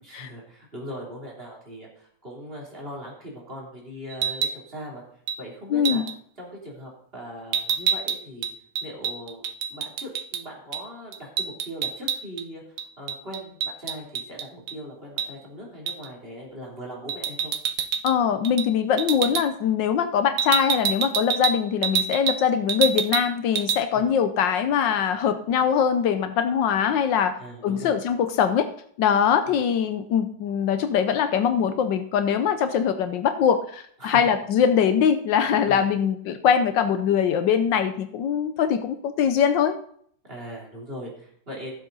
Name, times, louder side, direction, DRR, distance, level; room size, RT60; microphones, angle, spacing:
voice 1, 0.0-5.0 5.4-6.0 6.4-8.5 8.8-9.4 9.7-12.6 13.0-17.5 23.9-24.1 27.4-28.0 29.4-29.6 34.0-34.2 35.7-35.9 40.3-41.7, equal, 30° right, -3 dB, 3.5 m, -39 dB
sound 1, 4.1-4.6 5.3-5.4 5.8-6.1 7.5-10.4 10.7-10.8 11.1-12.4 12.8-14.8 15.2-15.3 15.9-16.1 17.1-18.2 18.4-18.7 19.0-19.5 20.4-22.4 22.7-23.3 23.6-23.8, right 8 dB, 75° right, 0.8 m, -27 dB
voice 2, 5.7-6.0 18.0-27.4 27.6-28.7 29.0-39.8, left 8 dB, 75° left, 9 dB, 1.4 m, -22 dB
15.0 x 7.5 x 4.0 m, 0.62 s
omnidirectional pair, 2.1 m